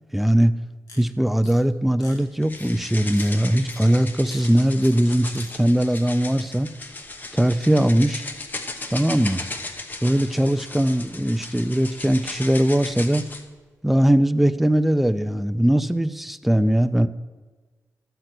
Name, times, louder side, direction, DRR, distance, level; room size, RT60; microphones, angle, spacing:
voice 1, 0.1-0.5 1.0-6.7 7.3-8.2 8.9-9.4 10.0-13.2 13.8-17.1, right 1 dB, 5° right, 11 dB, 0.4 m, -20 dB
sound 1, 0.9-1.0 1.4-1.6 1.9-2.2 2.6-2.7 3.1-3.3 3.7-3.8 4.2-4.4 4.8-5.0 5.3-5.6 5.9-6.0, left 3 dB, 70° left, 2.4 m, -44 dB
sound 2, 2.4-13.4, left 2 dB, 30° left, 0.9 m, -36 dB
13.0 x 8.0 x 6.0 m, 1.3 s
wide cardioid pair, 120°, 6 cm